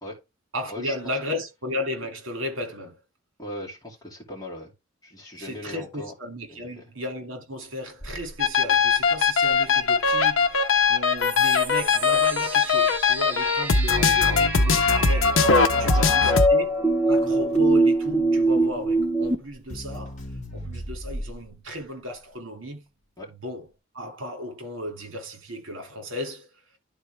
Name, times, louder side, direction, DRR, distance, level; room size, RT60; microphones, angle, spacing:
voice 1, 0.5-3.0 5.4-16.7 17.1-20.2 20.5-22.8 23.4-23.7 23.9-26.5, left 1 dB, 70° right, 2.4 m, -35 dB
voice 2, 3.4-4.7 5.0-6.1 6.5-6.9 15.7-16.2 23.2-23.3, left 1 dB, 15° left, 2.5 m, -39 dB
Crackle, 8.0-21.6, equal, 35° left, 1.8 m, -41 dB
sound 1, 8.4-16.5, left 5 dB, 70° left, 0.8 m, -20 dB
sound 2, 11.2-19.4, right 2 dB, 10° right, 0.7 m, -24 dB
11.5 x 4.2 x 3.4 m
head